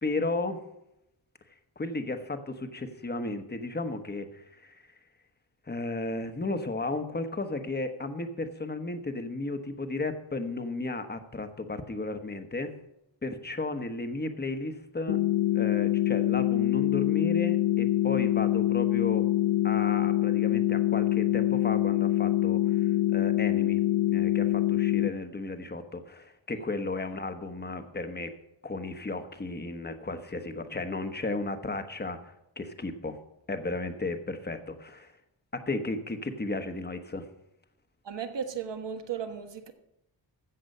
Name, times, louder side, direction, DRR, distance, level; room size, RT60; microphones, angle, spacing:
voice 1, 0.0-0.6 1.8-4.9 5.7-12.7 13.2-15.2 15.5-19.3 19.6-23.8 24.1-28.3 28.6-33.2 33.5-35.1 35.5-37.2, left 2 dB, 20° left, 1.1 m, -34 dB
sound 1, 15.1-25.1, left 14 dB, 75° left, 0.6 m, -25 dB
voice 2, 38.0-39.7, right 7 dB, 65° right, 1.3 m, -35 dB
14.5 x 7.7 x 5.5 m
wide cardioid pair, 135°, 46 cm